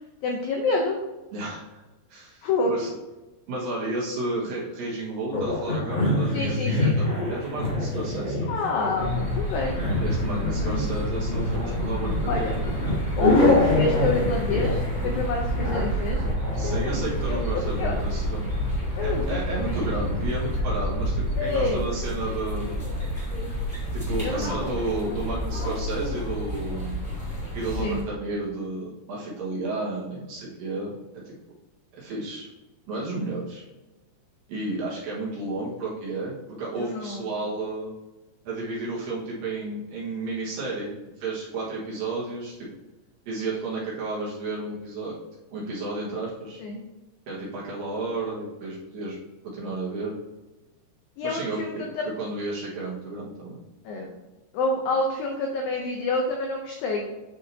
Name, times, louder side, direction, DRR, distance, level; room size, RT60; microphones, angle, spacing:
voice 1, 0.2-1.0 2.4-2.9 6.3-7.0 8.5-10.0 10.3-10.8 12.3-12.5 13.2-17.9 19.0-20.1 21.4-22.1 24.2-24.7 27.8-28.0 36.8-37.3 46.6-46.8 51.2-52.1 53.9-54.2 54.5-57.1, left 3 dB, 80° left, 1 dB, 2.0 m, -28 dB
voice 2, 1.3-1.6 2.1-2.9 3.5-8.6 10.0-12.6 16.6-18.5 19.0-22.9 23.9-27.0 27.5-31.3 31.9-32.5 32.9-33.6 34.5-37.9 38.5-42.7 43.3-45.1 45.5-46.6 47.3-49.2 49.4-50.2 51.2-53.6, right 2 dB, 65° right, -6 dB, 2.8 m, -32 dB
sound 1, 5.3-18.0, left 2 dB, 45° left, 1.4 m, -26 dB
sound 2, 8.9-28.0, equal, 25° left, 1.1 m, -29 dB
9.4 x 4.9 x 2.8 m, 1.1 s
omnidirectional pair, 5.1 m